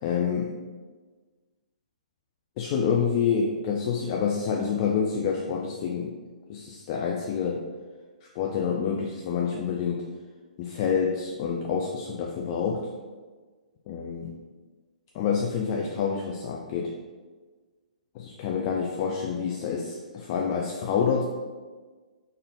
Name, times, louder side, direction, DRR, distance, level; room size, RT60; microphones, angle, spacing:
voice 1, 0.0-0.6 2.6-6.1 6.5-7.6 8.3-10.0 10.6-12.9 13.9-14.3 15.1-16.9 18.1-21.2, left 6 dB, 35° left, 0 dB, 0.4 m, -27 dB
4.0 x 2.6 x 3.7 m, 1.4 s
figure-of-eight pair, 125°, 4 cm